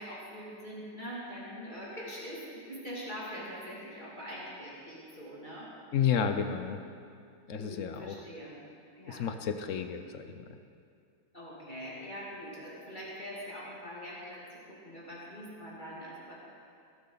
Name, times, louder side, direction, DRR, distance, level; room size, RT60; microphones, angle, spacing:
voice 1, 0.0-5.7 7.5-8.6 9.0-9.3 11.3-16.3, equal, 25° left, -7 dB, 2.6 m, -43 dB
voice 2, 5.9-6.8 7.5-8.2 9.1-10.5, left 7 dB, 60° left, 8 dB, 0.8 m, -31 dB
16.5 x 12.0 x 4.0 m, 2.3 s
omnidirectional pair, 1.9 m